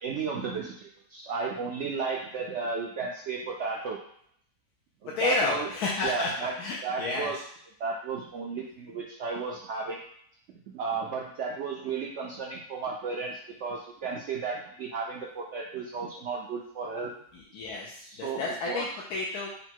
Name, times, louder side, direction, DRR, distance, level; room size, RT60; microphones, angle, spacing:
voice 1, 0.0-4.0 5.0-5.7 6.0-6.5 6.8-7.4 7.8-10.0 10.7-17.1 18.0-18.9, right 5 dB, 70° right, -1 dB, 0.6 m, -34 dB
voice 2, 5.2-7.3 17.3-19.5, left 3 dB, 75° left, -3 dB, 1.1 m, -31 dB
3.9 x 2.2 x 4.4 m, 0.66 s
omnidirectional pair, 1.7 m